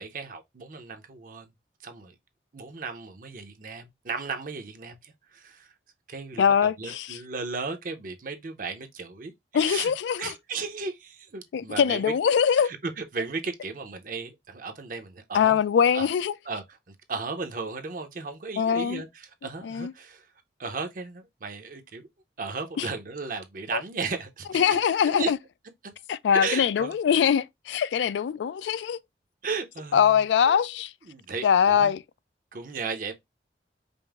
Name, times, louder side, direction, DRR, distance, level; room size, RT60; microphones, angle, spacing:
voice 1, 0.0-1.5 1.8-2.1 2.5-5.7 6.1-9.9 10.2-12.1 12.6-15.6 15.9-16.1 16.5-20.3 20.6-22.1 22.4-24.8 25.1-25.3 26.3-26.9 29.4-30.6 31.0-31.9 32.5-33.1, right 4 dB, 50° right, 0.6 m, -35 dB
voice 2, 6.4-7.2 9.5-10.3 11.5-12.7 15.3-16.3 18.6-19.0 19.6-19.9 22.8-22.9 23.7-23.8 24.5-25.4 26.1-29.0 29.9-30.9 31.4-32.0, left 7 dB, 80° left, 0.3 m, -23 dB
5.2 x 2.0 x 3.4 m
head